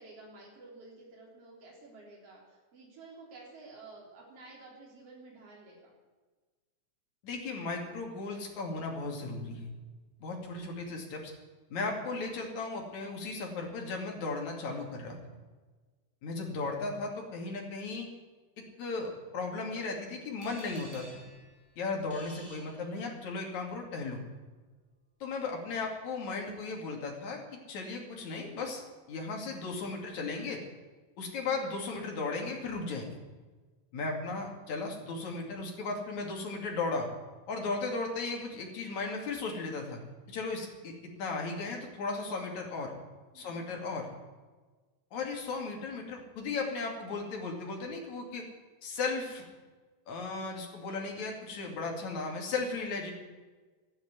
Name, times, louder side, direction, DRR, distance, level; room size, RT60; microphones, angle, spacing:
voice 1, 0.0-5.9 22.0-22.2 43.3-43.7, right 3 dB, 55° right, -3 dB, 4.6 m, -52 dB
voice 2, 7.2-9.7 10.2-11.3 11.7-15.2 16.2-18.1 18.8-21.2 21.8-24.2 25.2-28.8 29.1-30.6 31.2-33.2 33.9-37.1 37.5-40.0 40.3-42.9 43.4-44.1 45.1-48.5 48.8-49.5 50.1-53.1, left 3 dB, 75° left, 1 dB, 3.8 m, -36 dB
sound 1, 20.4-23.5, equal, 15° right, 5.2 m, -53 dB
13.5 x 10.0 x 9.6 m, 1.3 s
omnidirectional pair, 3.3 m